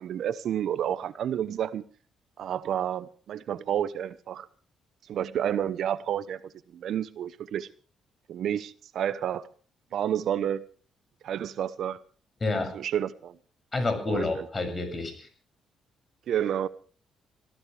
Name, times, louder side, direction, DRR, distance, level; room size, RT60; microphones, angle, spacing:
voice 1, 0.0-1.8 2.4-4.5 5.1-7.7 8.3-9.5 9.9-10.6 11.2-12.0 12.7-13.4 14.1-14.4 16.3-16.7, right 10 dB, 70° right, 0.9 m, -30 dB
voice 2, 12.4-12.7 13.7-15.3, left 2 dB, 30° left, 6.8 m, -29 dB
24.0 x 15.5 x 3.4 m
cardioid pair, 90°, 0 cm